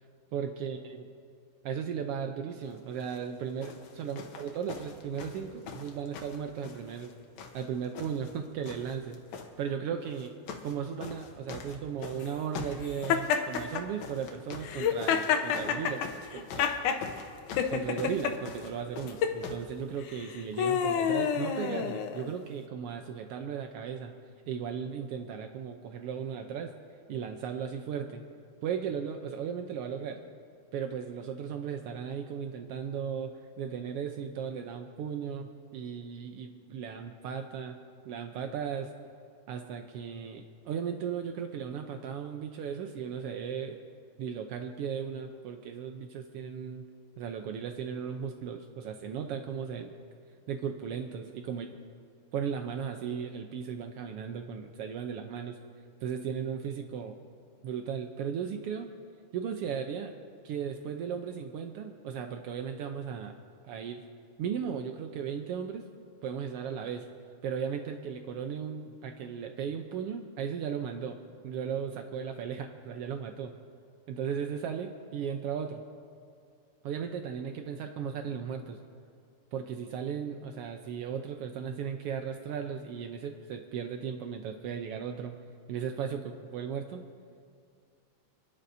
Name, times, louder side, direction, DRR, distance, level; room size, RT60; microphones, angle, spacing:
voice 1, 0.3-1.0 1.6-7.1 7.5-9.2 9.6-10.3 10.6-16.0 16.3-16.8 17.7-24.2 24.5-26.7 27.1-28.3 28.6-30.2 30.7-37.8 38.0-38.9 39.5-43.8 44.2-46.8 47.2-49.9 50.5-51.7 52.3-55.6 56.0-57.2 57.6-58.9 59.3-60.1 60.4-64.0 64.4-65.9 66.2-67.1 67.4-71.2 71.4-73.5 74.1-75.8 76.8-78.8 79.5-85.4 85.7-87.0, right 7 dB, 85° right, 5 dB, 1.3 m, -36 dB
sound 1, 3.0-3.2 3.6-7.1 7.4-8.4 8.6-9.5 10.1-10.8 11.0-19.7 20.5-20.6, left 5 dB, 70° left, 2.1 m, -44 dB
Laughter, 13.1-13.8 14.6-17.0 17.6-18.3 19.1-19.4 20.1-22.3, left 7 dB, 90° left, 2.2 m, -28 dB
29.5 x 11.0 x 2.7 m, 2.3 s
omnidirectional pair, 3.4 m